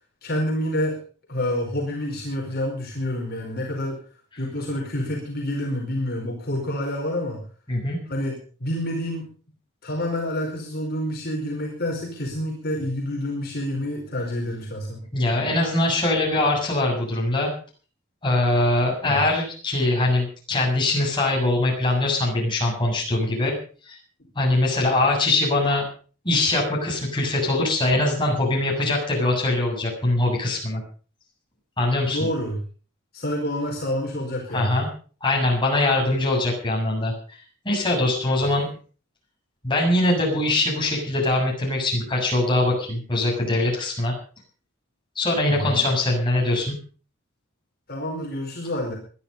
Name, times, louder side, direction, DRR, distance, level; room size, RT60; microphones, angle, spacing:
voice 1, 0.2-1.0 1.3-4.0 4.4-7.4 8.1-9.3 9.8-15.0 19.1-19.2 32.1-32.6 33.1-34.8 45.5-45.9 47.9-49.0, left 1 dB, 50° left, -1 dB, 4.8 m, -28 dB
voice 2, 15.1-17.5 18.2-23.5 23.8-24.0 24.4-25.8 26.2-30.8 31.8-32.2 34.5-34.9 35.2-37.1 37.6-38.7 39.6-44.1 45.2-46.8, left 2 dB, 25° left, -1 dB, 7.4 m, -22 dB
21.0 x 11.5 x 5.5 m, 0.41 s
head